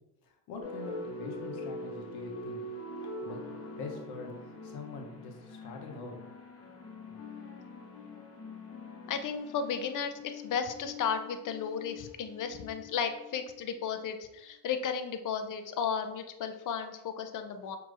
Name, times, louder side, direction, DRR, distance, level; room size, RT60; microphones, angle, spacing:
voice 1, 0.5-2.6 3.2-3.4 3.8-4.3 4.6-6.2, left 3 dB, 80° left, 2 dB, 0.9 m, -43 dB
sound 1, 0.6-14.0, left 2 dB, 40° left, 1.2 m, -44 dB
voice 2, 9.1-17.8, left 6 dB, 55° left, 8 dB, 0.6 m, -34 dB
5.9 x 2.9 x 2.5 m, 0.91 s
supercardioid pair, 60°, 37 cm